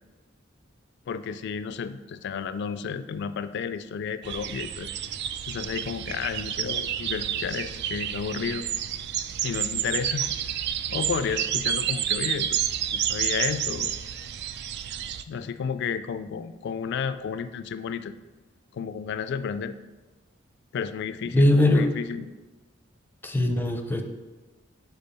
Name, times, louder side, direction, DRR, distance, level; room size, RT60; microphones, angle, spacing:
voice 1, 1.1-4.9 5.5-8.6 9.4-10.3 10.9-12.5 12.9-13.9 15.3-18.1 18.7-19.7 20.7-22.3, left 6 dB, 60° left, 11 dB, 0.3 m, -32 dB
sound 1, 4.2-15.2, right 10 dB, 60° right, 0.3 m, -30 dB
voice 2, 21.3-21.9 23.2-24.0, left 1 dB, 10° left, 4 dB, 0.5 m, -20 dB
5.2 x 4.7 x 5.3 m, 1.2 s
head